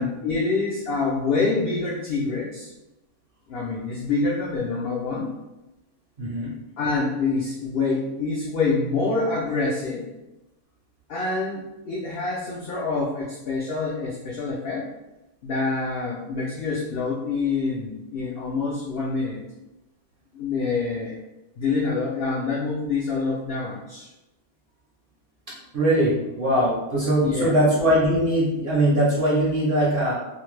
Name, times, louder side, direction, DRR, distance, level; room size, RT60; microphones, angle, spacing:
voice 1, 0.0-2.7 3.5-5.3 6.8-10.0 11.1-14.9 15.4-19.4 20.3-21.2 21.6-24.1 27.2-27.5, left 3 dB, 75° left, -4 dB, 0.5 m, -26 dB
voice 2, 6.2-6.5 25.5-30.1, right 1 dB, 55° right, -6 dB, 0.6 m, -21 dB
2.6 x 2.1 x 3.1 m, 0.98 s
omnidirectional pair, 1.5 m